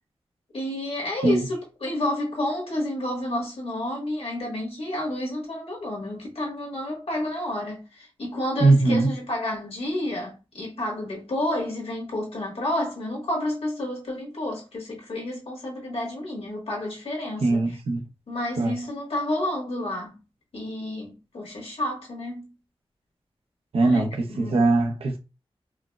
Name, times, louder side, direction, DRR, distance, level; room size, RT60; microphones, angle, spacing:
voice 1, 0.5-17.8 18.3-20.2 20.5-22.5 23.8-24.0 24.4-24.7, left 1 dB, 70° left, 1.3 m, -30 dB
voice 2, 8.6-9.1 17.4-18.0 18.6-18.7 23.7-25.2, right 3 dB, 70° right, 0.7 m, -21 dB
4.5 x 2.0 x 2.2 m
wide cardioid pair, 110°, 10 cm